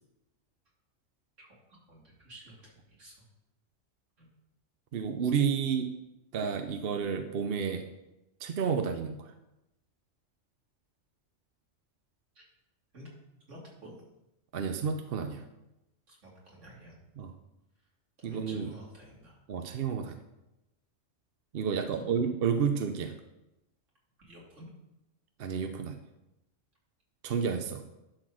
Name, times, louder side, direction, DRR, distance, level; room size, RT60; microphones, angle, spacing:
voice 1, 1.9-3.2 4.2-4.3 12.3-12.5 12.9-13.1 13.5-13.9 16.1-16.9 18.2-19.4 21.7-22.1 24.2-24.7, equal, 70° right, -4 dB, 3.2 m, -51 dB
voice 2, 4.9-5.9 6.3-7.9 8.4-9.3 14.5-15.4 17.2-17.3 18.2-18.7 19.5-20.2 21.5-23.1 25.4-26.0 27.2-27.8, right 6 dB, 55° right, 7 dB, 0.8 m, -30 dB
11.5 x 4.4 x 6.2 m, 0.91 s
omnidirectional pair, 1.3 m